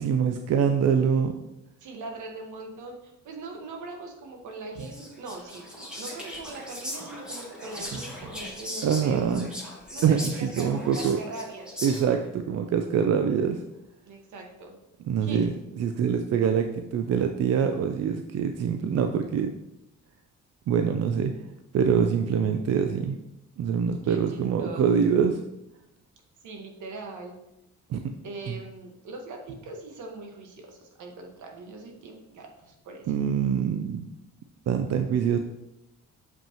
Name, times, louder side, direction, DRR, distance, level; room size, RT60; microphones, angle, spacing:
voice 1, 0.0-1.3 8.8-9.5 10.0-11.2 11.8-13.6 15.1-19.5 20.7-21.3 21.7-23.2 23.6-25.4 27.9-28.1 28.5-28.6 33.1-34.1 34.7-35.4, right 7 dB, 55° right, 7 dB, 0.5 m, -24 dB
voice 2, 1.8-9.5 9.9-11.7 14.1-14.8 15.2-15.5 24.0-25.0 26.4-27.4 28.2-33.1, right 3 dB, 75° right, 2 dB, 1.4 m, -41 dB
Whispering, 4.8-12.3, equal, 5° right, 2.0 m, -39 dB
7.2 x 5.5 x 2.9 m, 0.88 s
cardioid pair, 90°, 30 cm